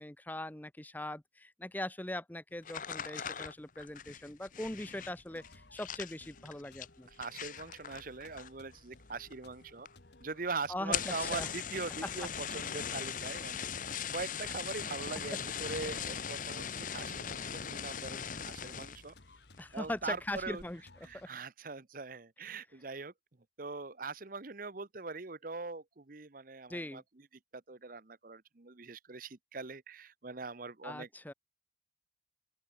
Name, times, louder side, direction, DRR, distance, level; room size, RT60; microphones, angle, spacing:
voice 1, 0.0-7.1 10.7-11.5 19.6-20.8 21.1-21.3 26.7-27.0 30.8-31.3, left 1 dB, 10° left, 0.7 m, -41 dB
sound 1, 2.6-8.8 9.0-9.6 9.9-10.0 10.2-10.3 10.8-19.1 19.5-19.9 20.3-20.7, left 8 dB, 45° left, 0.9 m, -40 dB
sound 2, 5.3-21.3, left 2 dB, 60° left, 1.9 m, -60 dB
voice 2, 7.2-9.9 10.2-13.7 14.1-19.1 19.7-20.6 21.0-23.1 23.6-27.0 27.5-31.1, right 4 dB, 45° right, 1.0 m, -42 dB
open air
head